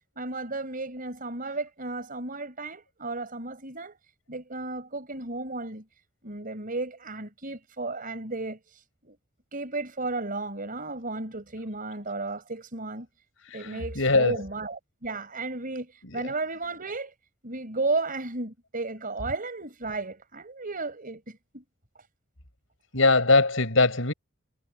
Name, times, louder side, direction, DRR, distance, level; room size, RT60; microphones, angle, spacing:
voice 1, 0.2-4.0 4.3-5.8 6.2-9.2 9.5-13.1 13.5-17.1 17.4-21.6, right 3 dB, 45° right, 5.1 m, -34 dB
voice 2, 13.4-14.3 16.1-16.2 22.9-24.1, left 3 dB, 75° left, 6.3 m, -22 dB
head